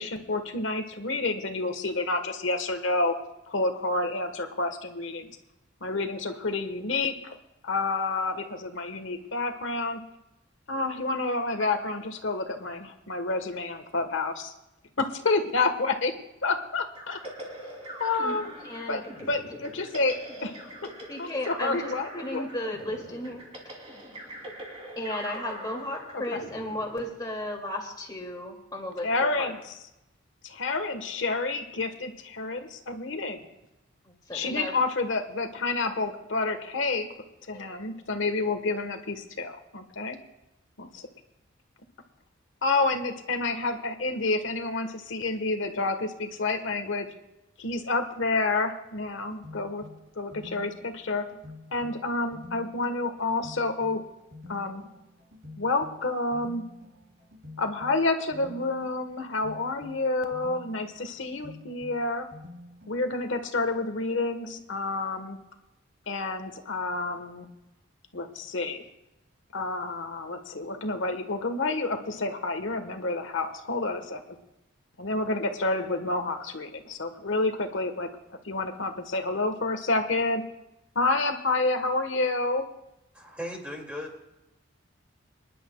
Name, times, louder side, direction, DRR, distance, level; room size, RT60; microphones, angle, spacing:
voice 1, 0.0-3.1 3.5-5.3 5.8-7.4 7.6-10.0 10.7-14.5 15.0-16.1 16.4-17.2 18.0-18.5 18.9-19.0 19.3-20.5 21.2-22.5 26.1-26.4 29.0-29.6 30.4-33.5 34.3-37.1 37.5-40.2 40.8-41.1 42.6-47.1 47.6-49.8 50.2-51.2 51.7-54.0 54.5-54.8 55.6-56.6 57.6-62.2 62.9-65.4 66.1-67.5 68.1-68.8 69.5-74.2 75.0-78.1 78.4-80.4 80.9-82.6, left 3 dB, 70° left, 7 dB, 1.3 m, -29 dB
sound 1, 16.9-27.5, equal, 30° right, 3.0 m, -42 dB
voice 2, 18.6-19.0 21.1-23.4 25.0-29.5 34.1-34.8 37.5-37.8, left 1 dB, 20° left, 0 dB, 2.4 m, -35 dB
sound 2, 49.2-63.8, left 2 dB, 55° right, 4.9 m, -49 dB
voice 3, 83.1-84.2, left 1 dB, 5° right, 0 dB, 2.3 m, -37 dB
26.0 x 11.0 x 2.3 m, 0.92 s
head